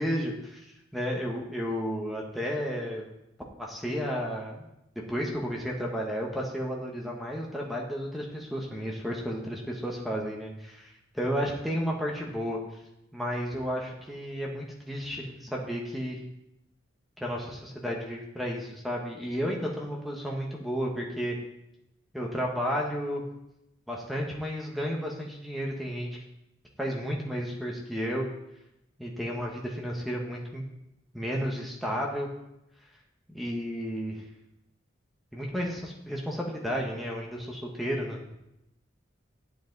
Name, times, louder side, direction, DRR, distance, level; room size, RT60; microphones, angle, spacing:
voice 1, 0.0-3.1 3.6-4.6 4.9-12.6 13.1-16.2 17.2-21.3 22.1-23.2 23.9-26.1 26.8-28.3 29.0-30.6 31.1-32.3 33.3-34.2 35.3-38.4, equal, ahead, -2 dB, 1.2 m, -32 dB
9.7 x 8.0 x 4.0 m, 0.87 s
head